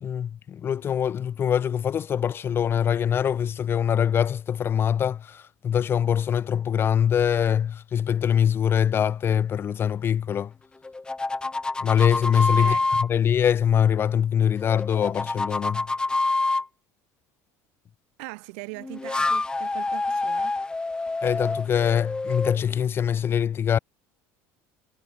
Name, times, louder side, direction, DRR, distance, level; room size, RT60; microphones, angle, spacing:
voice 1, 0.0-10.5 11.8-12.7 13.1-15.8 21.2-23.8, left 8 dB, 30° left, 0.4 m, -23 dB
sound 1, 10.8-13.1 14.6-16.7 18.8-22.8, left 3 dB, 10° left, 0.9 m, -27 dB
voice 2, 18.2-20.6, right 34 dB, 80° right, 3.9 m, -40 dB
supercardioid pair, 115°, 7 cm